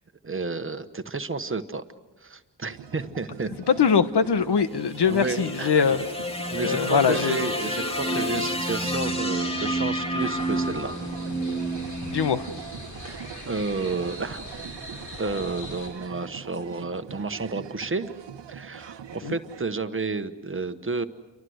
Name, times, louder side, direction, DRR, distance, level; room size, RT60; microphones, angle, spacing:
voice 1, 0.2-1.8 2.2-3.5 5.1-5.7 6.5-10.9 13.4-14.5 15.2-18.1 18.5-21.0, right 3 dB, 30° right, 9 dB, 1.1 m, -31 dB
sound 1, 2.7-19.6, right 8 dB, 90° right, 1.2 m, -42 dB
voice 2, 3.7-6.0 6.6-7.4 12.1-12.5 19.2-19.4, left 6 dB, 70° left, 12 dB, 1.2 m, -22 dB
sound 2, 4.5-12.9, equal, 15° left, 2.6 m, -30 dB
sound 3, 10.2-15.9, left 1 dB, 45° left, 6.9 m, -41 dB
29.5 x 24.0 x 7.9 m, 1.1 s
wide cardioid pair, 150°, 42 cm